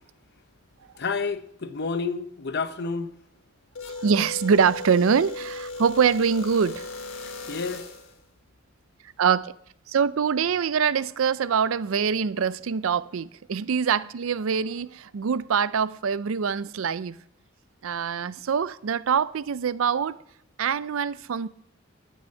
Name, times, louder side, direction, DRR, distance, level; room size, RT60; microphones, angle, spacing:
voice 1, 1.0-3.1 7.5-7.8, left 4 dB, 50° left, 0.8 m, -29 dB
sound 1, 3.8-8.2, left 3 dB, 75° left, 1.5 m, -37 dB
voice 2, 3.9-6.9 9.2-9.6 9.9-17.2 17.8-20.2 20.6-21.5, right 6 dB, 70° right, 0.4 m, -24 dB
12.0 x 6.5 x 7.7 m
head